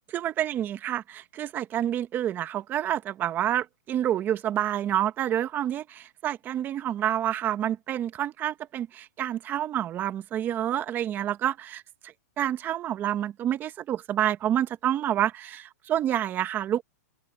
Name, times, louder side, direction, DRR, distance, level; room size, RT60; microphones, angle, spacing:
voice 1, 0.1-11.8 12.4-16.8, right 11 dB, 20° right, 1.0 m, -28 dB
open air
hypercardioid pair, 145°, 9 cm